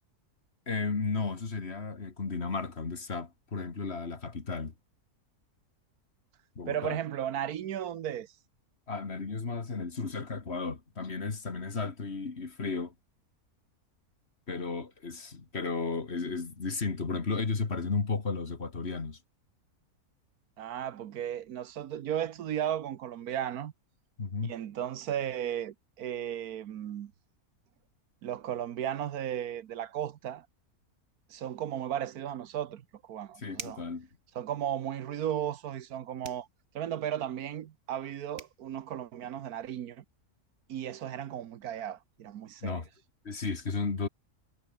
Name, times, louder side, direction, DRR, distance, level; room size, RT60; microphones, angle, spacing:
voice 1, 0.7-4.7 6.6-7.0 8.9-12.9 14.5-19.2 24.2-24.5 33.4-34.1 42.6-42.9 43.2-44.1, left 4 dB, 45° left, 2.2 m, -34 dB
voice 2, 6.7-8.3 20.6-23.7 24.4-27.1 28.2-30.5 31.3-33.8 34.3-36.5 36.7-40.0 40.7-42.8, right 10 dB, 80° right, 1.4 m, -35 dB
sound 1, 33.6-34.0 36.2-36.5 38.0-38.1 38.4-38.6, right 4 dB, 60° right, 2.9 m, -43 dB
omnidirectional pair, 1.6 m